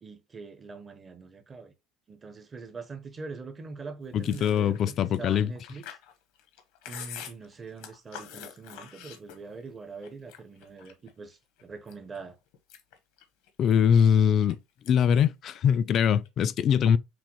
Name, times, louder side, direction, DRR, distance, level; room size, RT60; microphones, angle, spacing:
voice 1, 0.0-1.7 2.1-6.0 6.9-12.4, right 4 dB, 20° right, 0.6 m, -43 dB
voice 2, 4.1-5.5 13.6-14.6 14.9-17.0, left 8 dB, 40° left, 0.3 m, -22 dB
Chewing mastication, 4.2-9.7 10.0-11.1 11.6-12.2 12.5-14.5 14.8-15.2 15.4-16.3, left 9 dB, 80° left, 0.9 m, -46 dB
5.9 x 2.1 x 3.0 m
cardioid pair, 150°, 0 cm